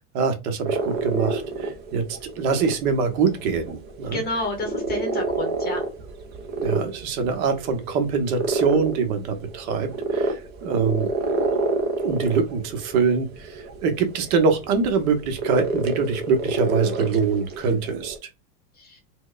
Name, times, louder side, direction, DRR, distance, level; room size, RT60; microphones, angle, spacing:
voice 1, 0.1-4.2 6.6-11.1 12.0-18.2, right 5 dB, 60° right, 7 dB, 1.0 m, -24 dB
sound 1, 0.7-18.2, right 3 dB, 25° right, 0.4 m, -29 dB
voice 2, 4.1-5.8 18.8-19.0, left 2 dB, 20° left, 4 dB, 0.8 m, -30 dB
4.5 x 2.2 x 2.3 m, 0.26 s
supercardioid pair, 150°, 48 cm